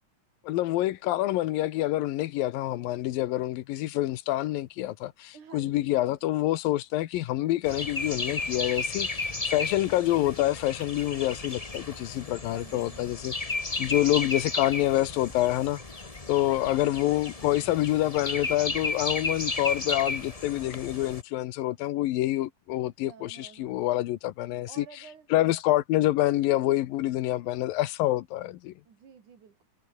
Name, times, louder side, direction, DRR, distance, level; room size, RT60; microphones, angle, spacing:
voice 1, 0.4-13.3 13.8-15.8 16.3-24.9 25.3-28.7, left 15 dB, 85° left, 2.8 m, -27 dB
voice 2, 5.3-6.2 12.5-13.4 16.5-17.2 23.1-23.9 24.7-25.3 28.9-29.7, right 7 dB, 60° right, 4.8 m, -51 dB
sound 1, 7.6-21.2, left 3 dB, 55° left, 0.4 m, -34 dB
omnidirectional pair, 3.9 m